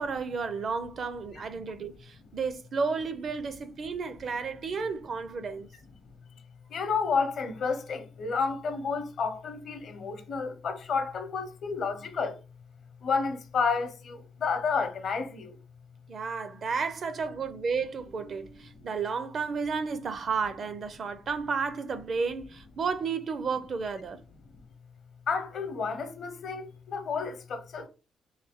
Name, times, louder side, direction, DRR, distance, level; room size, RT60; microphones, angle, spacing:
voice 1, 0.0-5.7 16.1-24.2, right 5 dB, 50° right, 0.5 m, -32 dB
voice 2, 6.7-12.4 13.0-15.6 25.3-27.9, left 5 dB, 60° left, 0.8 m, -31 dB
3.2 x 2.8 x 3.6 m
cardioid pair, 90°, 0 cm